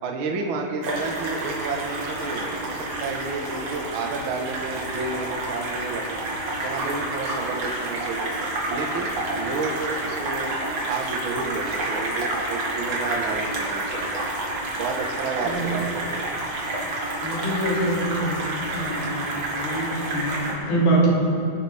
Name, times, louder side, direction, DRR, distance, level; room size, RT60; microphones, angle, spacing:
voice 1, 0.0-6.2 6.6-8.3 8.7-9.1 9.4-10.5 10.9-14.2 14.8-16.3, right 3 dB, 85° right, 2 dB, 1.1 m, -31 dB
sound 1, 0.8-20.5, right 2 dB, 45° right, 3.0 m, -29 dB
voice 2, 15.4-16.0 17.2-21.1, right 2 dB, 70° left, -5 dB, 4.6 m, -25 dB
23.5 x 12.0 x 3.5 m, 2.4 s
omnidirectional pair, 4.3 m